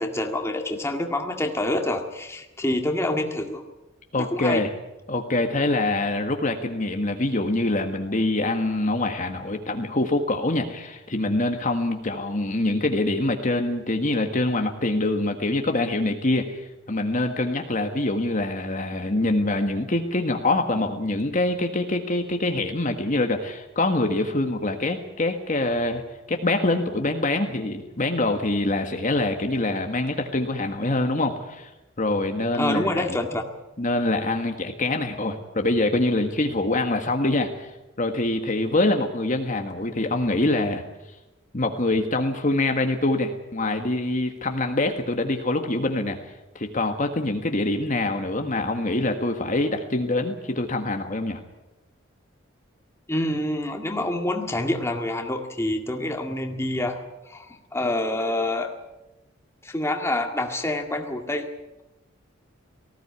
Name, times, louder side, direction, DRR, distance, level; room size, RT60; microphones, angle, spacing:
voice 1, 0.0-3.6 4.2-4.6 32.6-33.4 53.1-58.7 59.6-61.5, left 1 dB, 15° left, 3 dB, 2.0 m, -27 dB
voice 2, 4.1-4.7 5.1-26.0 26.3-31.7 32.0-33.2 33.8-37.7 38.0-40.8 41.5-51.4, left 2 dB, 40° left, 5 dB, 1.6 m, -25 dB
19.0 x 16.5 x 9.7 m, 0.99 s
head